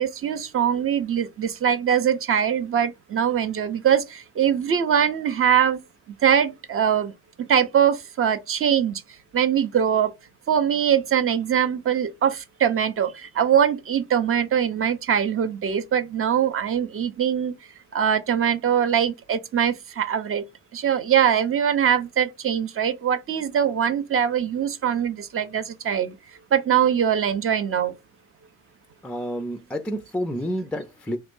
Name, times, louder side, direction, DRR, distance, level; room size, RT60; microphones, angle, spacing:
voice 1, 0.0-5.8 6.2-7.1 7.4-9.0 9.3-10.1 10.5-17.5 17.9-20.4 20.7-26.2 26.5-27.9, right 8 dB, 35° right, 0.7 m, -22 dB
voice 2, 29.0-31.2, equal, 5° left, 0.3 m, -29 dB
3.1 x 2.4 x 3.6 m
hypercardioid pair, 55°, 40 cm